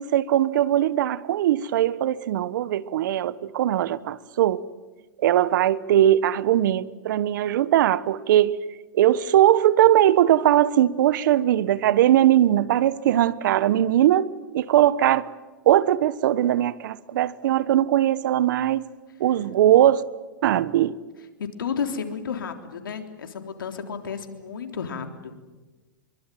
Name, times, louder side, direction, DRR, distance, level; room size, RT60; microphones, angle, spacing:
voice 1, 0.0-4.6 5.2-8.6 8.9-15.3 15.7-18.9 19.2-20.0 20.4-20.9, right 12 dB, 70° right, 1.2 m, -20 dB
voice 2, 21.4-25.6, left 6 dB, 85° left, 3.6 m, -32 dB
26.0 x 23.5 x 9.3 m
hypercardioid pair, 125°, 11 cm